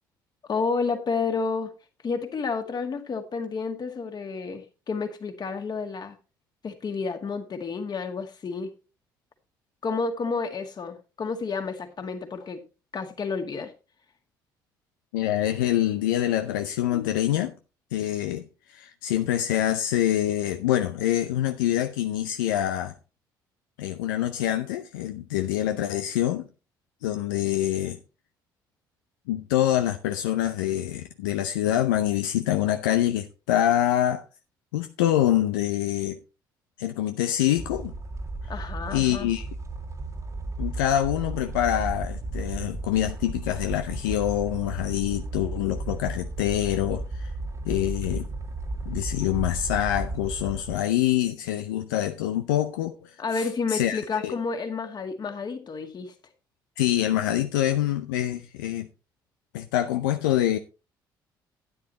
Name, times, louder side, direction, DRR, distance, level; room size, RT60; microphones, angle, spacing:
voice 1, 0.5-1.7 2.0-6.2 6.6-8.7 9.8-12.6 12.9-13.7 38.5-39.3 53.2-56.1, left 4 dB, 40° left, 2.1 m, -30 dB
voice 2, 15.1-17.5 17.9-22.9 23.8-26.5 27.0-28.0 29.3-34.2 34.7-36.2 36.8-37.9 38.9-39.5 40.6-47.3 47.6-48.3 48.9-54.3 56.8-58.9 59.5-60.6, left 12 dB, 80° left, 0.6 m, -25 dB
sound 1, 37.6-50.8, right 2 dB, 30° right, 1.7 m, -34 dB
12.0 x 9.6 x 2.9 m
hypercardioid pair, 50°, 11 cm